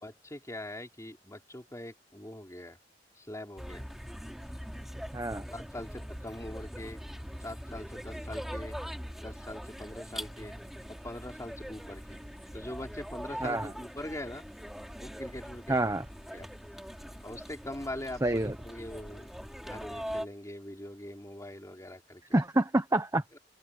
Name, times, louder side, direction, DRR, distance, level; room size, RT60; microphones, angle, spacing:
voice 1, 0.0-2.8 3.2-3.8 5.5-7.0 7.4-8.8 9.2-10.5 11.0-12.2 12.5-14.4 15.0-16.0 16.3-16.5 17.2-19.3 19.6-22.2 23.3-23.4, left 1 dB, 15° left, 3.5 m, -42 dB
sound 1, 3.6-20.2, equal, ahead, 4.7 m, -42 dB
voice 2, 5.1-5.4 13.4-13.7 15.7-16.0 18.2-18.6 22.3-23.2, right 1 dB, 20° right, 1.1 m, -27 dB
open air
head